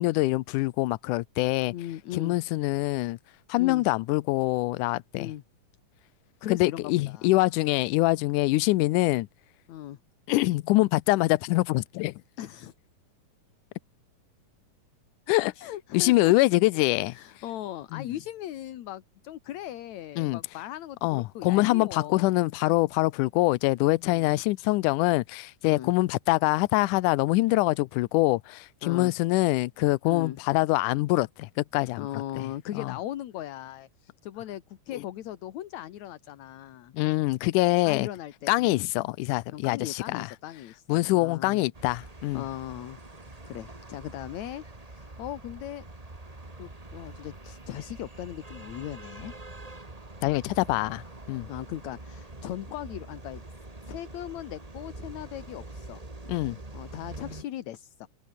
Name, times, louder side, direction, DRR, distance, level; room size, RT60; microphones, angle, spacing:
voice 1, 0.0-1.7 2.1-3.2 3.5-5.3 6.5-9.3 10.3-12.1 15.3-15.5 15.9-17.2 17.9-18.1 20.2-20.4 21.0-32.1 32.4-32.5 32.8-32.9 36.9-38.1 38.5-40.3 40.9-42.4 50.2-51.0 51.3-51.5 56.3-56.6, left 20 dB, 80° left, 2.1 m, -24 dB
voice 2, 1.7-2.4 3.6-3.8 5.2-5.4 6.4-7.3 9.7-10.0 12.4-12.7 15.5-16.3 17.1-22.4 24.1-24.3 25.6-25.9 28.8-29.1 30.1-30.4 32.0-36.9 37.8-38.9 39.5-41.7 42.3-43.0 43.5-44.6 44.9-45.8 46.6-49.3 51.5-53.4 53.9-56.0 56.7-58.1, left 12 dB, 65° left, 2.4 m, -38 dB
sound 1, 41.7-57.4, right 2 dB, 15° right, 2.0 m, -44 dB
omnidirectional pair, 3.8 m